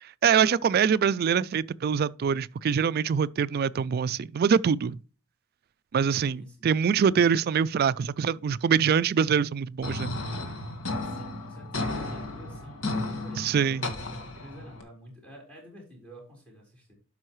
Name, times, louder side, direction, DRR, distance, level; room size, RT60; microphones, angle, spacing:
voice 1, 0.2-5.0 5.9-10.1 13.4-13.9, right 7 dB, 45° right, 0.3 m, -24 dB
voice 2, 6.1-6.7 11.0-16.9, equal, 5° left, 4.1 m, -49 dB
sound 1, 9.8-14.8, left 2 dB, 85° left, 1.7 m, -34 dB
12.0 x 5.5 x 3.1 m
head